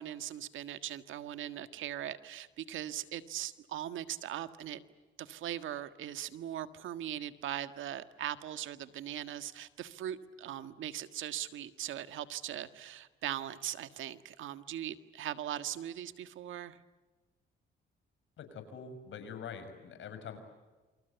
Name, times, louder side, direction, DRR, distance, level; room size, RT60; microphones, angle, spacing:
voice 1, 0.0-4.8 5.2-16.8, right 11 dB, 80° right, 11 dB, 1.7 m, -40 dB
voice 2, 18.4-20.4, left 6 dB, 70° left, 8 dB, 6.1 m, -44 dB
28.0 x 26.0 x 8.2 m, 1.3 s
cardioid pair, 90°, 20 cm